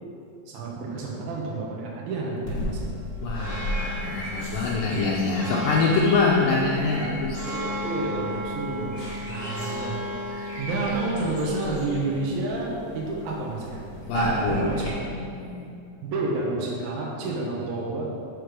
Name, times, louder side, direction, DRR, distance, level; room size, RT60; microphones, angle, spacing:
voice 1, 0.5-3.0 7.5-10.0 10.6-13.8 14.1-14.9 16.0-18.0, right 3 dB, 80° right, -3 dB, 2.8 m, -29 dB
sound 1, 2.4-14.9, left 1 dB, 30° left, 1.1 m, -33 dB
voice 2, 3.2-7.5 14.1-14.7 15.0-15.7, left 3 dB, 75° left, -4 dB, 2.3 m, -25 dB
6.6 x 5.0 x 6.4 m, 2.6 s
omnidirectional pair, 4.2 m